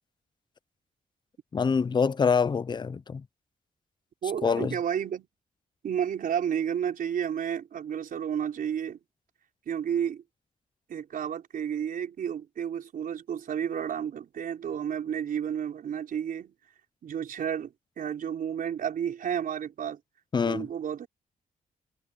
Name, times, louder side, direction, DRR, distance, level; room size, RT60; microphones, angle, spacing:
voice 1, 1.5-3.2 4.4-4.8 20.3-20.7, left 5 dB, 30° left, 0.5 m, -25 dB
voice 2, 4.2-5.3 5.8-9.0 9.7-10.2 10.9-16.5 17.0-20.0 20.4-21.1, right 8 dB, 75° right, 4.8 m, -31 dB
cardioid pair, 105°, 15 cm